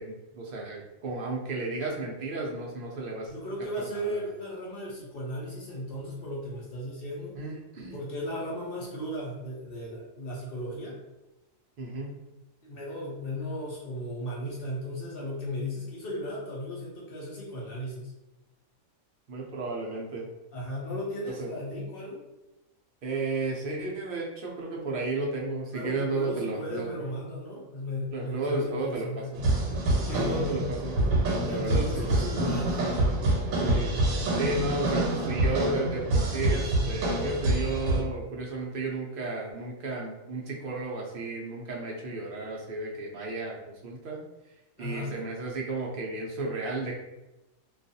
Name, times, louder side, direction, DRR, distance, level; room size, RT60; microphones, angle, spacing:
voice 1, 0.0-3.3 3.8-4.2 7.4-8.0 11.8-12.2 19.3-20.3 21.3-21.5 23.0-27.0 28.1-29.5 30.1-31.1 31.5-32.1 33.6-33.9 34.4-44.2 44.8-46.9, right 2 dB, 65° right, -2 dB, 0.5 m, -33 dB
voice 2, 3.3-7.3 7.9-10.9 12.6-18.1 20.5-22.2 25.7-29.4 30.0-30.6 31.3-33.1 44.8-45.1, equal, 55° left, -5 dB, 0.7 m, -36 dB
sound 1, 29.4-38.0, right 1 dB, 80° right, 1.1 m, -26 dB
2.4 x 2.3 x 2.6 m, 1.0 s
omnidirectional pair, 1.4 m